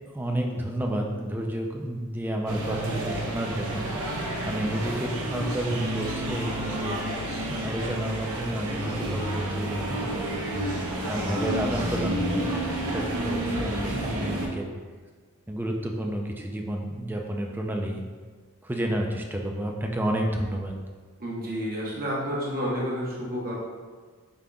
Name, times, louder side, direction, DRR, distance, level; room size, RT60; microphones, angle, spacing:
voice 1, 0.1-3.9 4.5-7.1 7.6-10.4 11.1-14.7 15.5-18.0 18.6-20.8, right 1 dB, 10° right, 1 dB, 0.4 m, -30 dB
sound 1, 2.5-14.5, right 1 dB, 75° right, 0.8 m, -30 dB
voice 2, 21.2-23.5, equal, 45° right, -5 dB, 1.0 m, -30 dB
5.1 x 3.6 x 2.3 m, 1.5 s
head